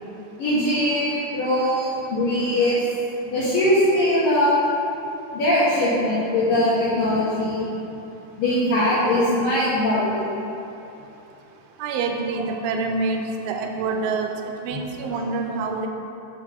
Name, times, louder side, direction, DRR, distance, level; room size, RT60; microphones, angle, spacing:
voice 1, 0.4-2.8 3.3-4.6 5.3-7.7 8.4-10.2, left 1 dB, 70° left, -10 dB, 2.1 m, -21 dB
voice 2, 11.8-15.9, right 4 dB, 85° right, 3 dB, 2.9 m, -26 dB
7.4 x 4.3 x 5.9 m, 2.9 s
omnidirectional pair, 5.7 m